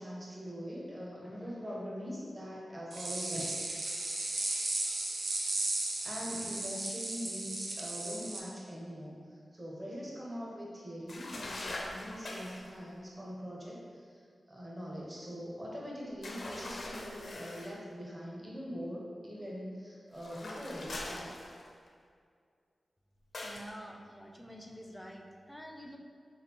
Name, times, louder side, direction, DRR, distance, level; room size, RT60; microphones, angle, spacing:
voice 1, 0.0-3.4 6.0-9.2 9.5-14.2 14.5-21.6, equal, 25° right, -5 dB, 0.9 m, -42 dB
sound 1, 2.9-8.4, right 2 dB, 75° right, 0.5 m, -35 dB
sound 2, 11.1-12.7 16.2-17.8 20.1-21.9 23.3-23.7, left 2 dB, 70° left, 0.5 m, -42 dB
voice 2, 23.4-26.0, equal, 10° left, 2 dB, 0.5 m, -48 dB
4.0 x 3.6 x 2.9 m, 2.2 s
wide cardioid pair, 70°, 0 cm